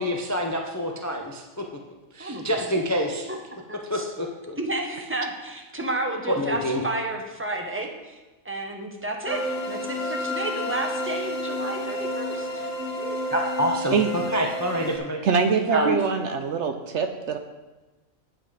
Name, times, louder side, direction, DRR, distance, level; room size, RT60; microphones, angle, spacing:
voice 1, 0.0-1.6 2.1-3.3 3.9-4.6 6.3-6.8 13.3-15.2 15.7-16.0, equal, 20° left, 2 dB, 0.5 m, -27 dB
voice 2, 2.2-2.6 3.3-3.4 3.7-4.1 4.6-8.2 8.4-9.4 9.7-12.7 13.0-13.2, right 2 dB, 10° right, 2 dB, 1.0 m, -31 dB
sound 1, 9.3-15.0, left 1 dB, 65° left, 1.6 m, -30 dB
voice 3, 15.2-17.4, right 5 dB, 65° right, 6 dB, 0.9 m, -23 dB
8.5 x 7.7 x 4.9 m, 1.1 s
omnidirectional pair, 1.4 m